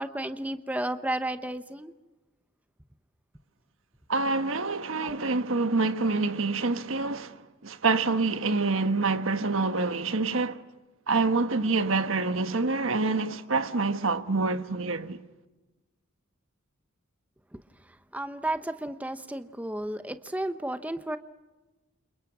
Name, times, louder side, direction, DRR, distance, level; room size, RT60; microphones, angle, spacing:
voice 1, 0.0-1.9 5.0-5.1 18.1-21.2, right 1 dB, 5° right, 0.8 m, -32 dB
voice 2, 4.1-10.6 11.1-15.2, right 3 dB, 70° right, 1.4 m, -26 dB
30.0 x 28.0 x 6.1 m
head